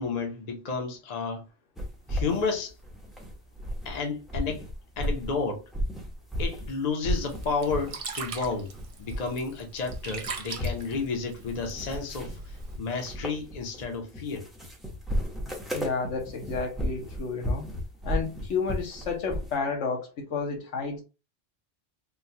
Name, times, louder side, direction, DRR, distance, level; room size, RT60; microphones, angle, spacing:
voice 1, 0.0-1.4 2.1-2.7 3.8-4.6 5.0-5.7 6.4-8.7 9.0-14.5, left 4 dB, 40° left, 0.7 m, -31 dB
sound 1, 1.8-4.0 4.2-6.7 7.0-8.0 8.3-9.5 9.8-19.6, equal, ahead, 0.6 m, -34 dB
Sink (filling or washing), 7.1-12.8, right 4 dB, 45° right, 0.4 m, -41 dB
voice 2, 15.7-17.6 18.0-21.0, left 5 dB, 80° left, 1.2 m, -31 dB
3.7 x 2.2 x 2.7 m
omnidirectional pair, 1.2 m